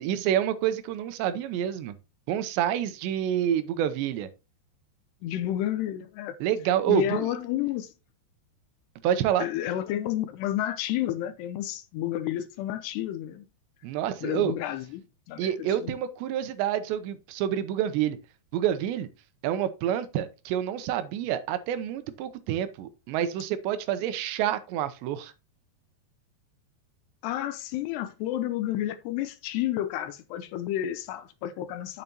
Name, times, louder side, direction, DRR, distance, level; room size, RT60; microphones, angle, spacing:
voice 1, 0.0-2.0 2.3-4.3 6.4-7.3 9.0-9.5 13.8-14.6 15.4-18.2 18.5-19.1 19.4-25.3, right 10 dB, 85° right, 3.0 m, -28 dB
voice 2, 5.2-6.4 6.9-7.9 9.4-13.5 14.2-15.9 27.2-32.0, left 12 dB, 80° left, 2.7 m, -31 dB
9.0 x 8.1 x 2.9 m
omnidirectional pair, 5.0 m